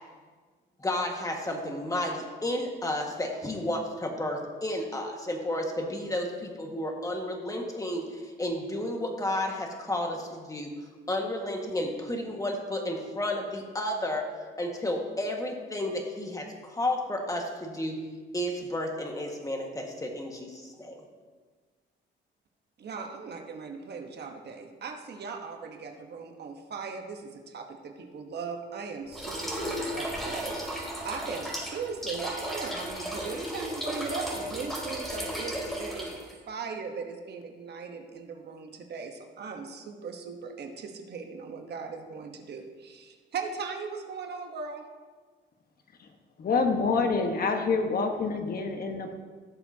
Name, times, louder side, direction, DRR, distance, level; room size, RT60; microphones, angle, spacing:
voice 1, 0.8-10.7 11.1-18.0 18.3-21.0, left 1 dB, 15° left, 1 dB, 1.7 m, -32 dB
voice 2, 22.8-36.2 36.5-44.8 48.3-48.4, right 5 dB, 55° right, 4 dB, 1.2 m, -39 dB
sound 1, 29.1-36.3, equal, ahead, 3.3 m, -34 dB
voice 3, 46.4-49.1, left 4 dB, 50° left, 4 dB, 1.4 m, -27 dB
16.0 x 7.0 x 2.9 m, 1.4 s
cardioid pair, 90°, 20 cm